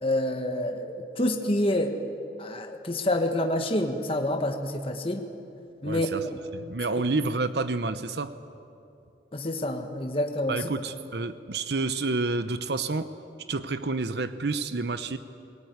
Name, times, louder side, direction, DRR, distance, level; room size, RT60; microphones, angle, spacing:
voice 1, 0.0-1.9 2.4-5.2 5.8-6.3 9.3-10.6, left 1 dB, 30° left, 4 dB, 1.6 m, -27 dB
voice 2, 5.8-6.3 6.5-8.3 10.5-13.1 13.5-15.2, right 3 dB, 70° right, 11 dB, 0.8 m, -29 dB
22.5 x 18.0 x 9.6 m, 2.7 s
head